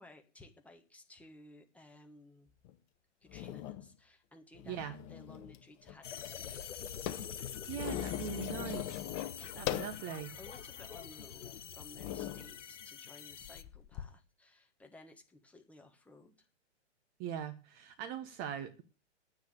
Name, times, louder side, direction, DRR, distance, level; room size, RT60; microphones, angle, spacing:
voice 1, 0.0-2.5 3.2-7.0 9.1-16.5, left 2 dB, 5° left, 4 dB, 1.4 m, -57 dB
sound 1, 2.6-2.7 3.3-3.9 4.5-5.6 5.9-6.0 6.2-10.0 10.6-10.7 11.4-11.5 12.0-12.5 13.4-14.0, left 12 dB, 30° left, 1.1 m, -40 dB
sound 2, 6.0-13.6, left 8 dB, 80° left, 1.0 m, -45 dB
voice 2, 7.4-9.1 9.6-10.3 17.2-18.8, right 9 dB, 25° right, 9 dB, 1.1 m, -41 dB
9.6 x 9.3 x 8.2 m, 0.34 s
hypercardioid pair, 135°, 36 cm